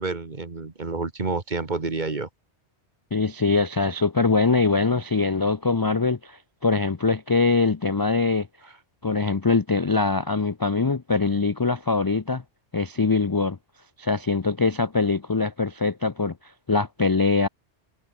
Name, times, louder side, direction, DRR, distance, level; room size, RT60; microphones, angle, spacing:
voice 1, 0.0-2.3, right 3 dB, 40° right, 1.8 m, -29 dB
voice 2, 3.1-8.5 9.0-12.4 12.7-13.6 14.0-17.5, left 4 dB, 30° left, 0.4 m, -23 dB
omnidirectional pair, 1.2 m